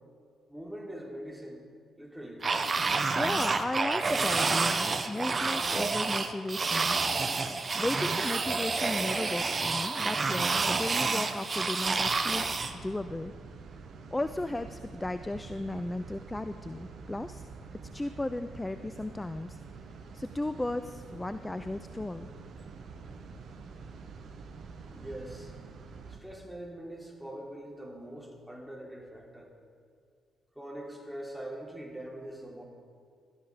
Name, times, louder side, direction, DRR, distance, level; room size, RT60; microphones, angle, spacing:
voice 1, 0.5-1.6 2.0-2.5 24.8-25.5 26.1-29.5 30.6-32.6, right 1 dB, ahead, -1 dB, 3.5 m, -43 dB
sound 1, 2.4-12.7, right 4 dB, 40° right, 1.0 m, -29 dB
voice 2, 3.1-7.0 7.8-13.3 14.1-17.4 17.9-19.6 20.1-22.3, left 2 dB, 15° left, 11 dB, 0.5 m, -35 dB
sound 2, 11.8-26.2, right 4 dB, 55° right, 1.3 m, -47 dB
17.5 x 13.0 x 5.1 m, 2.3 s
figure-of-eight pair, 40°, 0 cm